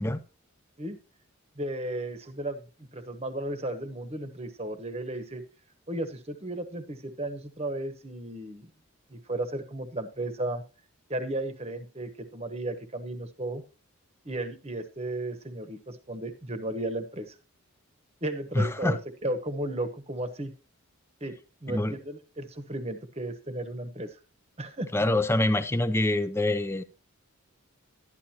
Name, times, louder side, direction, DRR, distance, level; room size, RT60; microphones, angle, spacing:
voice 1, 1.6-5.4 5.9-8.7 9.1-10.6 11.1-13.6 14.2-17.3 18.2-20.5 21.2-21.4 21.6-24.2 24.6-24.9, right 1 dB, 30° right, 1.1 m, -34 dB
voice 2, 18.5-19.0 21.7-22.0 24.9-26.8, left 1 dB, 10° left, 0.5 m, -25 dB
12.0 x 10.5 x 2.9 m
head